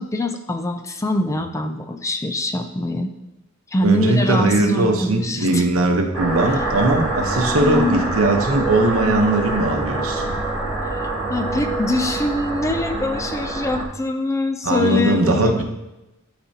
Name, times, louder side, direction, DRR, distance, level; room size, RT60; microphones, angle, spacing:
voice 1, 0.0-3.1 3.7-5.7 6.9-7.3 7.6-8.0 10.8-15.6, left 2 dB, 15° left, 6 dB, 0.4 m, -24 dB
voice 2, 3.8-10.3 14.6-15.6, right 2 dB, 80° right, 3 dB, 1.0 m, -19 dB
sound 1, 6.1-13.9, right 2 dB, ahead, 2.7 m, -25 dB
12.0 x 4.3 x 2.8 m, 0.97 s
head